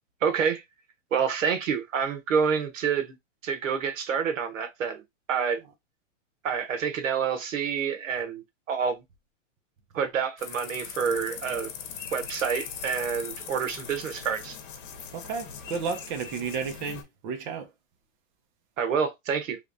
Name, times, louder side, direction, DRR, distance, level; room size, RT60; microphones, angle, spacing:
voice 1, 0.2-0.6 1.1-3.2 3.4-5.0 5.3-5.6 6.4-9.0 9.9-11.7 12.1-14.6 18.8-19.6, right 6 dB, 80° right, 1.3 m, -28 dB
sound 1, 10.4-17.0, left 7 dB, 45° left, 1.3 m, -40 dB
voice 2, 15.1-17.7, right 5 dB, 35° right, 0.9 m, -32 dB
3.3 x 3.1 x 2.5 m
hypercardioid pair, 150°, 38 cm